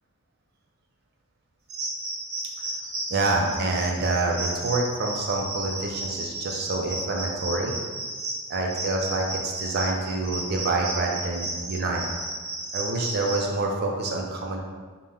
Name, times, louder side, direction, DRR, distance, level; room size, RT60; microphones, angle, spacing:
sound 1, 1.7-13.5, right 2 dB, 70° right, 0.9 m, -33 dB
voice 1, 3.1-7.8 8.5-12.1 12.7-14.6, right 2 dB, 50° right, 0 dB, 0.5 m, -27 dB
5.4 x 2.1 x 3.5 m, 1.5 s
head